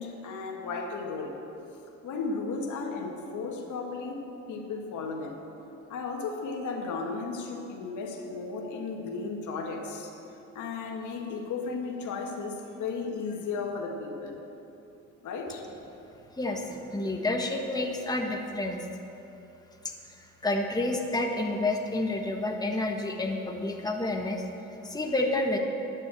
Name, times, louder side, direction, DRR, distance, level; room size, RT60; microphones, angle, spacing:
voice 1, 0.0-1.4 2.0-5.4 5.9-10.2 10.5-14.4 15.2-15.6, left 4 dB, 75° left, 1 dB, 1.9 m, -35 dB
voice 2, 16.4-18.8 19.8-24.4 24.8-25.6, left 2 dB, 15° left, 1 dB, 1.4 m, -29 dB
10.5 x 9.6 x 7.8 m, 2.8 s
cardioid pair, 90°, 30 cm